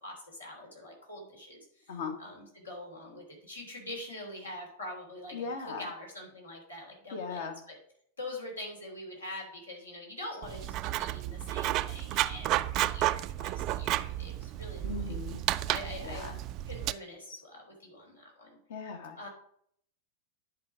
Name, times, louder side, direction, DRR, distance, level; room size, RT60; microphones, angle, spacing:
voice 1, 0.0-1.9 2.2-7.8 8.2-15.1 15.7-16.3 16.7-18.6 19.1-19.3, left 1 dB, 75° left, -1 dB, 3.3 m, -44 dB
voice 2, 5.3-5.9 7.1-7.6 14.8-15.4 16.0-16.4 18.7-19.3, left 5 dB, 55° left, 5 dB, 1.5 m, -38 dB
Writing, 10.4-16.9, right 15 dB, 40° right, 0.4 m, -32 dB
10.5 x 5.1 x 5.0 m, 0.68 s
figure-of-eight pair, 90°, 0 cm